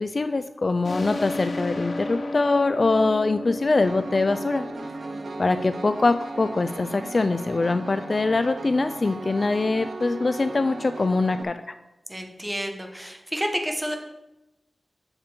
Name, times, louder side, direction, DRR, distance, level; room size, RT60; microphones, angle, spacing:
voice 1, 0.0-4.7 5.4-11.6, left 3 dB, 45° left, 10 dB, 0.3 m, -23 dB
sound 1, 0.8-6.2, left 2 dB, 70° left, 1.2 m, -33 dB
Piano, 3.8-11.4, right 3 dB, 75° right, 0.7 m, -37 dB
voice 2, 4.7-5.4 12.1-14.0, equal, 10° right, 4 dB, 1.1 m, -31 dB
7.2 x 6.8 x 5.0 m, 0.98 s
wide cardioid pair, 100°, 0 cm